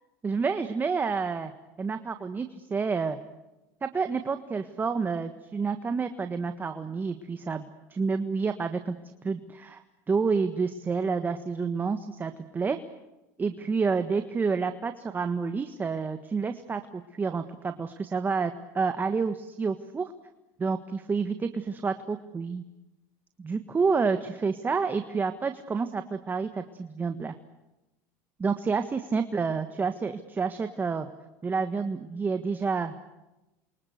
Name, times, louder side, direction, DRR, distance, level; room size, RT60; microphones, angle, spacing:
voice 1, 0.2-1.5 1.8-3.2 3.8-8.9 9.2-9.8 10.1-12.8 13.4-20.1 20.6-22.6 23.4-27.3 28.4-31.1 31.4-32.9, right 5 dB, 25° right, 8 dB, 1.5 m, -29 dB
29.0 x 24.5 x 8.1 m, 1.0 s
supercardioid pair, 100°, 8 cm